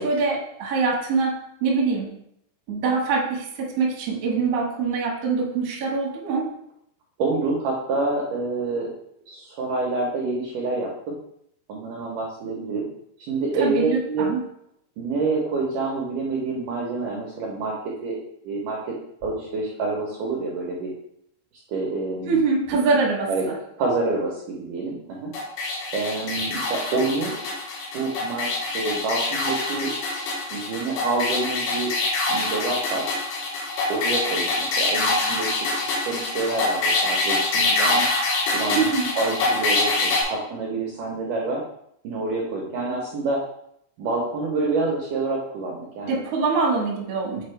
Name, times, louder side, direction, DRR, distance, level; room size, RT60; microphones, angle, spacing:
voice 1, 0.0-2.1 2.7-6.5 13.6-14.4 22.3-23.6 38.7-39.1 46.0-47.4, right 4 dB, 65° right, -2 dB, 1.5 m, -24 dB
voice 2, 7.2-8.9 9.3-11.2 11.7-12.8 13.3-14.3 15.0-17.8 18.0-18.2 18.4-19.0 19.2-20.9 21.7-22.4 23.3-23.4 23.8-25.3 25.9-27.3 27.9-29.9 30.5-31.9 32.3-33.1 33.9-38.0 38.5-38.8 39.1-41.6 42.0-43.4 44.0-46.2, right 3 dB, 80° right, -2 dB, 1.8 m, -27 dB
sound 1, 25.3-40.2, left 3 dB, 75° left, 3.6 m, -25 dB
7.9 x 4.4 x 3.3 m, 0.73 s
omnidirectional pair, 5.2 m